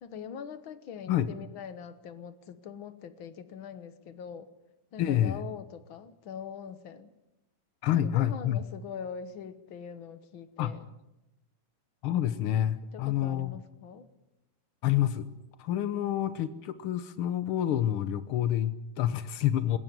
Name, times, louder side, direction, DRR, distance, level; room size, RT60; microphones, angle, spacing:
voice 1, 0.0-4.5 4.9-7.1 7.9-10.8 12.9-14.1 15.9-16.1, left 7 dB, 55° left, 13 dB, 1.4 m, -43 dB
voice 2, 5.0-5.4 7.8-8.6 10.6-10.7 12.0-13.6 14.8-15.3 15.6-19.8, left 11 dB, 85° left, 13 dB, 1.2 m, -28 dB
20.5 x 17.5 x 9.2 m, 0.93 s
omnidirectional pair, 3.7 m